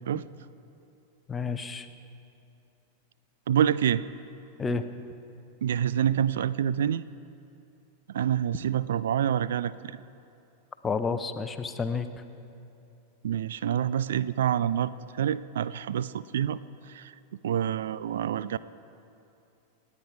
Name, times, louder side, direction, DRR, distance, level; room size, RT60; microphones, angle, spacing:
voice 1, 1.3-1.9 4.6-4.8 10.8-12.1, left 5 dB, 15° left, 10 dB, 0.8 m, -30 dB
voice 2, 3.5-4.0 5.6-7.0 8.1-10.0 13.2-16.6 16.9-17.1 17.4-18.6, right 9 dB, 60° right, 16 dB, 0.3 m, -27 dB
26.0 x 9.7 x 4.8 m, 2.7 s
figure-of-eight pair, 90°, 0 cm